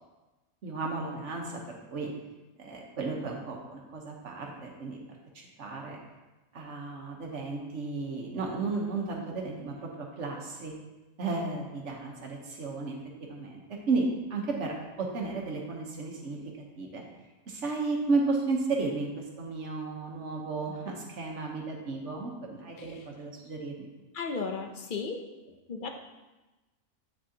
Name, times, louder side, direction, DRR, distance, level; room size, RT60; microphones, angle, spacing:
voice 1, 0.6-2.1 2.6-5.0 5.3-6.0 6.5-10.7 11.2-17.0 17.5-23.9, right 3 dB, 65° right, 0 dB, 1.4 m, -33 dB
voice 2, 24.1-25.2 25.7-25.9, left 4 dB, 50° left, 4 dB, 0.7 m, -35 dB
8.6 x 6.1 x 2.8 m, 1.1 s
omnidirectional pair, 1.4 m